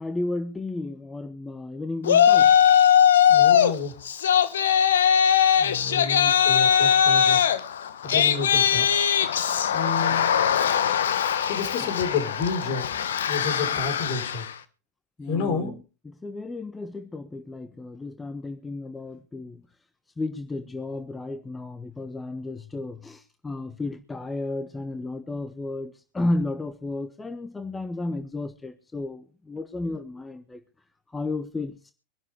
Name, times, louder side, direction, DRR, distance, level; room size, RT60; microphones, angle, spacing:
voice 1, 0.0-2.5 5.9-6.4 10.1-10.2 11.8-11.9 15.2-19.6 20.2-30.6 31.1-31.8, left 2 dB, 15° left, 1.1 m, -33 dB
Yell, 2.1-3.7 4.1-14.5, left 8 dB, 70° left, 1.1 m, -20 dB
voice 2, 3.3-4.0 5.6-7.4 8.0-8.9 9.7-10.3 11.5-14.5 15.3-15.7, left 4 dB, 50° left, 4.4 m, -30 dB
23.5 x 11.5 x 3.5 m
figure-of-eight pair, 85°, 0 cm